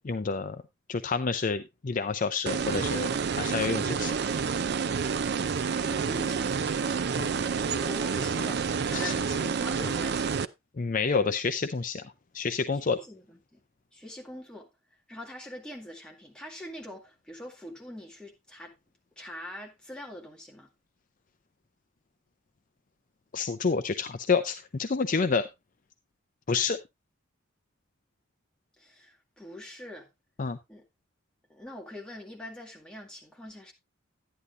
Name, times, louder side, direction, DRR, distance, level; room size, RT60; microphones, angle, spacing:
voice 1, 0.0-0.6 0.9-4.1 7.2-7.3 8.9-9.1 10.8-13.0 23.3-25.5 26.5-26.8 30.4-30.6, left 5 dB, 40° left, 0.5 m, -29 dB
sound 1, 2.5-10.5, right 6 dB, 55° right, 0.4 m, -29 dB
voice 2, 5.6-6.7 7.7-10.5 12.7-13.6 13.9-14.7 15.1-18.8 19.2-20.7 28.8-30.1 30.7-30.8 31.5-33.7, left 1 dB, 5° left, 2.0 m, -43 dB
11.0 x 10.0 x 2.6 m
head